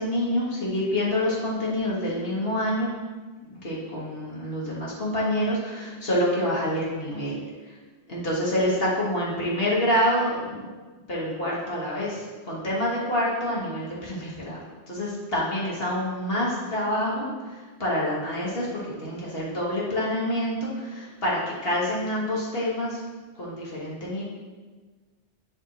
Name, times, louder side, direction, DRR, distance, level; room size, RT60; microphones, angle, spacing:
voice 1, 0.0-2.9 3.5-7.4 7.7-7.8 8.1-10.7 11.1-23.0 23.4-24.2, left 1 dB, 55° left, -6 dB, 1.7 m, -27 dB
9.9 x 3.5 x 3.0 m, 1.4 s
omnidirectional pair, 1.2 m